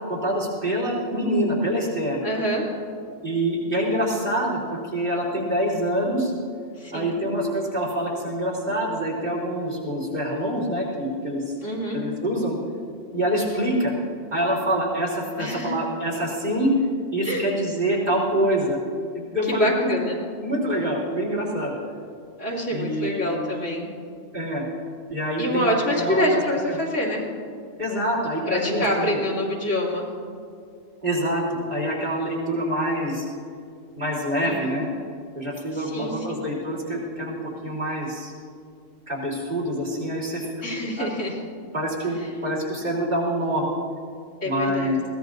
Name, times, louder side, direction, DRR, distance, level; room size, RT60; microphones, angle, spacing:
voice 1, 0.1-2.2 3.2-6.3 6.9-11.5 11.9-12.6 13.1-13.9 14.3-16.8 17.1-18.8 19.1-19.9 20.4-21.8 22.7-23.2 24.3-24.7 25.1-26.4 26.7-26.8 27.8-29.2 31.0-33.2 34.0-34.9 35.3-38.3 39.1-40.6 41.0-41.1 41.7-43.6 44.4-45.0, equal, 40° right, -6 dB, 3.9 m, -26 dB
voice 2, 2.2-2.7 6.8-7.2 11.6-12.0 15.4-15.8 17.2-17.4 19.5-20.2 22.4-23.9 25.4-27.2 28.5-30.1 34.4-34.8 35.7-36.4 40.6-41.4 42.2-42.3 44.4-44.9, equal, 65° left, -3 dB, 3.0 m, -26 dB
21.5 x 17.0 x 2.7 m, 2.3 s
omnidirectional pair, 1.3 m